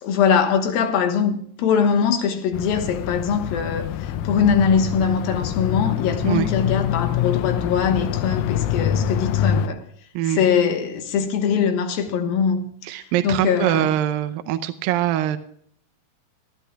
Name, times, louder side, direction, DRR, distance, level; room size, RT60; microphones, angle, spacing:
voice 1, 0.0-9.8 10.3-12.7 13.0-13.9, left 6 dB, 70° left, 2.9 m, -22 dB
sound 1, 2.5-9.7, left 10 dB, 85° left, 2.0 m, -25 dB
voice 2, 12.8-15.4, right 12 dB, 80° right, 2.2 m, -23 dB
27.0 x 10.5 x 2.3 m
omnidirectional pair, 4.7 m